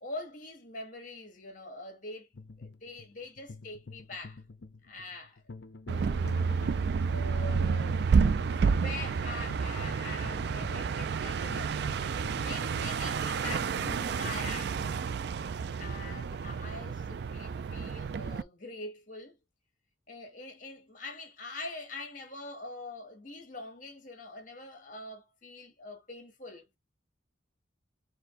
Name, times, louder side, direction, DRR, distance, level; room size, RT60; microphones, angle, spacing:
voice 1, 0.0-2.3 2.6-4.4 4.8-5.4 5.9-6.4 7.1-11.8 12.4-14.8 15.8-19.4 20.1-26.8, left 2 dB, 40° left, 1.4 m, -44 dB
sound 1, 2.3-14.3, left 3 dB, 60° left, 0.6 m, -48 dB
sound 2, 5.9-18.4, right 5 dB, 55° right, 0.3 m, -30 dB
4.4 x 2.6 x 3.7 m
head